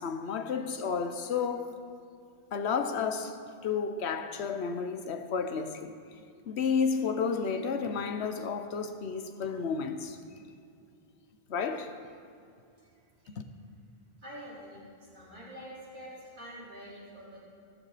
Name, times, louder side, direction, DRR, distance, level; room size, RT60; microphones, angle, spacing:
voice 1, 0.0-1.7 2.5-3.4 3.6-5.9 6.5-10.2 11.5-11.9 13.3-13.4, left 6 dB, 75° left, 1.0 m, -31 dB
voice 2, 14.2-17.4, equal, 65° right, 4.4 m, -46 dB
15.0 x 13.5 x 4.1 m
omnidirectional pair, 1.1 m